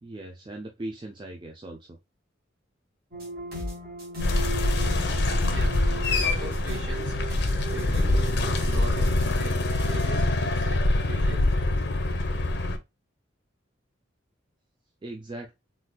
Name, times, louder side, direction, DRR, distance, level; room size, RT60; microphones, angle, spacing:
voice 1, 0.0-2.0 15.0-15.5, right 1 dB, 25° right, 0.4 m, -39 dB
sound 1, 3.1-10.3, equal, 50° right, 1.6 m, -36 dB
sound 2, 4.2-12.8, left 2 dB, 60° left, 0.6 m, -25 dB
voice 2, 5.5-7.2 7.7-9.6 9.9-11.4, right 2 dB, 70° right, 1.1 m, -41 dB
3.9 x 2.5 x 2.2 m
head